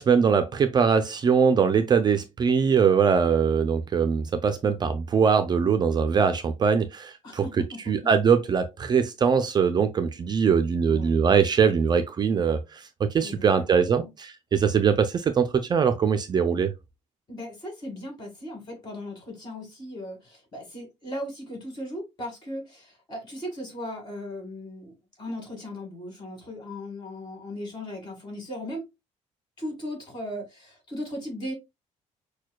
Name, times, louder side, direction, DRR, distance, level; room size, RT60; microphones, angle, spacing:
voice 1, 0.0-7.4 7.9-14.0 14.5-16.7, right 6 dB, 35° right, 0.4 m, -22 dB
voice 2, 7.2-8.1 10.9-11.2 13.2-14.1 17.3-28.8 29.6-31.5, left 1 dB, 35° left, 2.1 m, -37 dB
6.3 x 2.2 x 2.2 m
cardioid pair, 140°, 13 cm